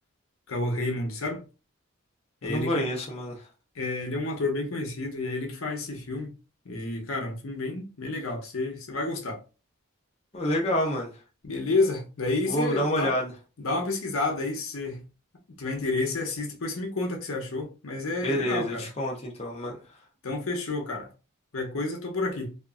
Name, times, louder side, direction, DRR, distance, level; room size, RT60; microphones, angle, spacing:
voice 1, 0.5-1.4 2.4-2.9 3.8-6.3 6.6-9.4 11.4-13.1 13.6-15.0 15.6-18.9 20.2-21.1 21.5-22.6, left 2 dB, 80° left, 0.8 m, -30 dB
voice 2, 2.4-3.4 10.3-11.1 12.5-13.3 18.2-19.8, equal, 30° left, 0.6 m, -28 dB
2.8 x 2.4 x 2.4 m
head